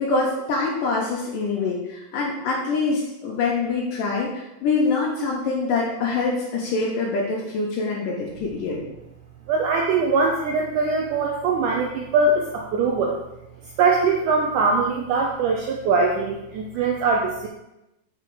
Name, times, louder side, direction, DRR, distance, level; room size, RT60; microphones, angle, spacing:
voice 1, 0.0-8.8, left 3 dB, 75° left, -3 dB, 2.3 m, -25 dB
voice 2, 9.5-13.2 13.8-17.5, right 4 dB, 80° right, 0 dB, 1.8 m, -22 dB
6.0 x 4.7 x 4.7 m, 0.93 s
omnidirectional pair, 4.3 m